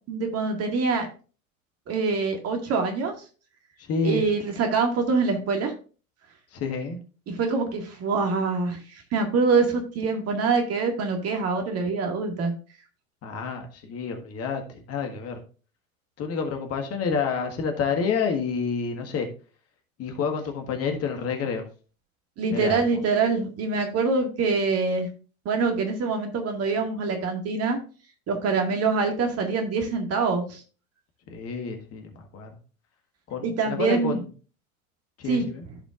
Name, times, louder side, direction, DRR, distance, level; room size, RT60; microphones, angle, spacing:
voice 1, 0.1-1.1 1.9-3.1 4.0-5.7 7.3-12.5 22.4-25.1 25.5-27.8 28.3-30.6 33.4-34.2 35.3-35.4, right 4 dB, 35° right, 3 dB, 2.0 m, -25 dB
voice 2, 3.8-4.2 6.5-7.0 13.2-15.4 16.2-19.3 20.0-21.6 22.5-23.0 31.3-32.6 33.3-34.3 35.2-35.6, left 5 dB, 35° left, 4 dB, 1.7 m, -29 dB
14.5 x 5.0 x 2.5 m, 0.36 s
figure-of-eight pair, 85°, 42 cm